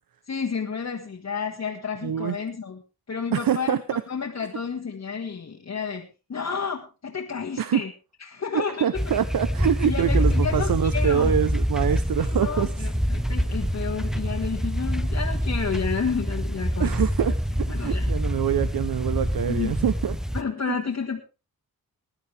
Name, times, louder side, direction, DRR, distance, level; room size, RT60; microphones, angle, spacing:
voice 1, 0.3-2.8 3.1-3.8 4.1-7.9 8.2-9.0 9.8-11.3 12.3-16.9 17.2-17.3 17.7-18.1 19.5-19.7 20.3-21.2, left 6 dB, 45° left, -1 dB, 1.8 m, -31 dB
voice 2, 2.0-2.4 3.3-3.8 7.6-7.8 8.5-12.9 16.8-17.3 17.8-20.2 20.7-20.8, right 9 dB, 65° right, 13 dB, 0.8 m, -25 dB
sound 1, 8.9-20.4, equal, ahead, 0.6 m, -26 dB
20.5 x 11.0 x 3.4 m, 0.31 s
wide cardioid pair, 140°, 37 cm